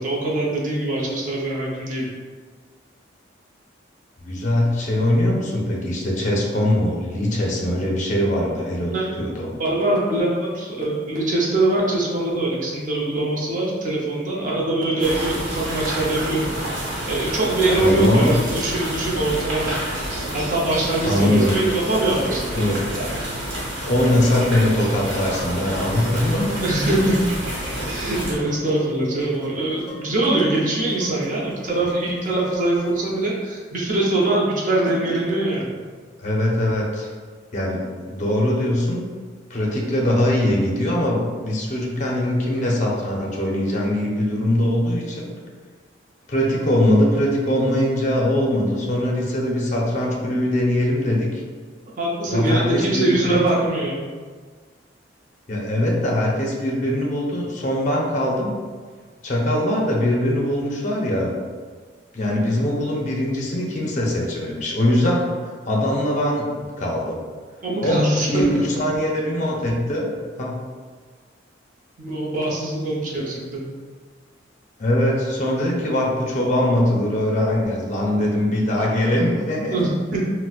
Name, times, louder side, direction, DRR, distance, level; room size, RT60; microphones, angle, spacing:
voice 1, 0.0-2.1 8.9-9.1 9.6-19.8 20.3-22.7 26.6-27.2 27.8-35.8 52.0-54.0 67.6-68.4 72.0-73.6 79.7-80.3, right 2 dB, 45° right, -4 dB, 0.6 m, -23 dB
voice 2, 4.2-9.5 17.8-18.4 21.0-21.5 22.5-22.8 23.8-26.6 36.2-37.1 37.5-39.1 39.5-45.3 46.3-51.3 52.3-53.2 55.5-58.6 59.2-61.4 62.1-65.2 65.7-67.2 67.8-68.0 68.3-70.1 70.4-70.6 74.8-79.8, left 1 dB, 40° left, -2 dB, 0.5 m, -21 dB
sound 1, 15.0-28.4, right 1 dB, 70° right, 0.9 m, -29 dB
Dishes pots and pans, 26.3-33.2, left 1 dB, ahead, 1.0 m, -44 dB
4.0 x 2.1 x 2.4 m, 1.5 s
head